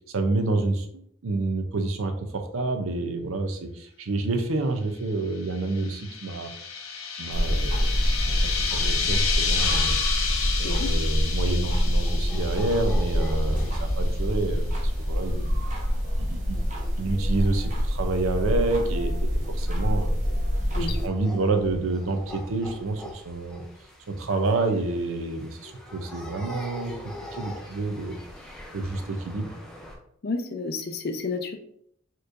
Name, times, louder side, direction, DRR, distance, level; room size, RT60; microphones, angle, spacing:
voice 1, 0.1-0.9 1.2-6.5 7.2-10.0 10.6-15.5 16.2-16.6 17.0-20.1 20.7-23.6 24.1-26.9 27.3-28.2 28.7-29.5, right 2 dB, 80° right, 6 dB, 0.6 m, -28 dB
sound 1, 5.5-13.8, left 5 dB, 80° left, 0.7 m, -30 dB
sound 2, 7.3-21.1, equal, 35° right, 0.8 m, -26 dB
sound 3, 11.4-29.9, left 1 dB, 5° left, 0.5 m, -44 dB
voice 2, 30.2-31.6, left 3 dB, 50° left, 6 dB, 0.5 m, -31 dB
4.4 x 3.1 x 2.5 m, 0.69 s
head